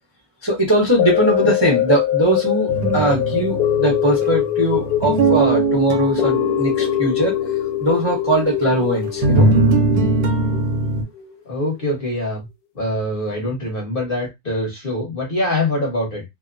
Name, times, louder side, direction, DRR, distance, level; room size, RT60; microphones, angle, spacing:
voice 1, 0.4-7.3 7.8-9.5, right 1 dB, 25° right, 0.6 m, -20 dB
sound 1, 1.0-11.3 11.8-11.9, left 12 dB, 80° left, 1.1 m, -23 dB
sound 2, 2.7-7.2 8.6-11.0, right 3 dB, 85° right, 1.2 m, -20 dB
voice 2, 11.5-12.5 12.7-16.2, left 1 dB, 40° left, 1.0 m, -24 dB
2.8 x 2.1 x 2.5 m
omnidirectional pair, 1.7 m